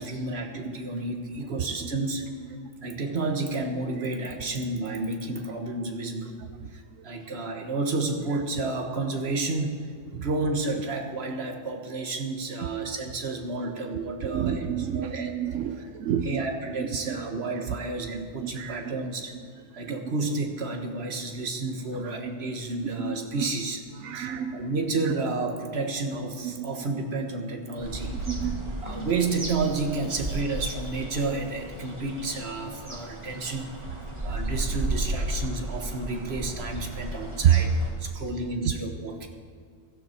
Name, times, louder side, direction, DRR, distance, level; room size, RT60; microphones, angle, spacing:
voice 1, 0.0-2.2 2.8-6.4 6.7-9.8 10.1-15.3 15.8-15.9 16.2-19.4 19.8-23.8 24.1-28.1 28.4-33.7 34.2-39.3, right 3 dB, 50° right, 3 dB, 1.6 m, -31 dB
voice 2, 14.2-16.4 18.4-18.8 23.0-23.1 24.0-24.6 26.6-26.7 28.3-28.6 28.9-29.1 34.2-34.4 37.4-37.5, right 10 dB, 70° right, 8 dB, 1.0 m, -27 dB
sound 1, 27.8-37.9, right 1 dB, 20° right, 2.4 m, -34 dB
16.5 x 12.5 x 4.5 m, 2.2 s
omnidirectional pair, 1.4 m